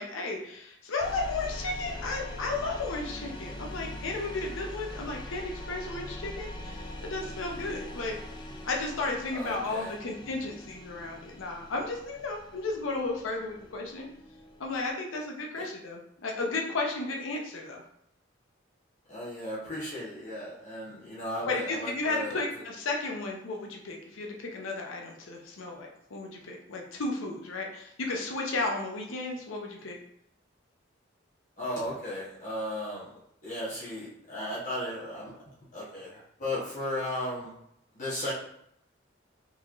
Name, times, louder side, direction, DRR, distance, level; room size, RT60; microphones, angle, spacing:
voice 1, 0.0-8.2 8.7-14.1 14.6-17.8 21.5-30.0, left 3 dB, 75° left, 1 dB, 0.6 m, -34 dB
sound 1, 1.0-14.9, left 1 dB, 25° left, 0.3 m, -42 dB
voice 2, 9.3-9.9 15.6-15.7 19.1-22.4 31.6-33.1 33.4-35.3 35.7-37.5 37.9-38.3, left 1 dB, 40° left, -8 dB, 1.0 m, -35 dB
4.0 x 3.0 x 2.4 m, 0.75 s
head